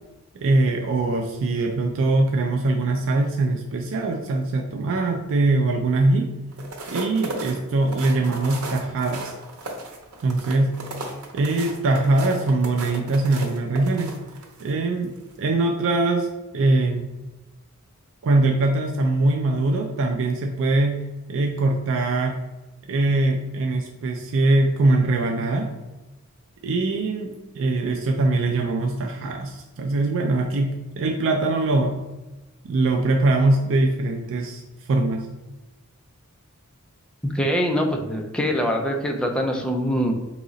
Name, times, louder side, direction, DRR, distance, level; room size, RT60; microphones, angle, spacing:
voice 1, 0.3-6.3 6.9-9.3 10.2-10.8 11.3-14.2 14.6-17.1 18.2-22.4 22.9-25.7 26.6-32.0 32.6-34.6 34.9-35.3, right 2 dB, 65° right, 3 dB, 0.4 m, -22 dB
sound 1, 6.5-14.7 15.2-15.4, right 2 dB, 90° right, 0.8 m, -35 dB
voice 2, 37.2-40.1, equal, 5° left, 1 dB, 0.5 m, -23 dB
3.7 x 3.0 x 3.9 m, 1.1 s
head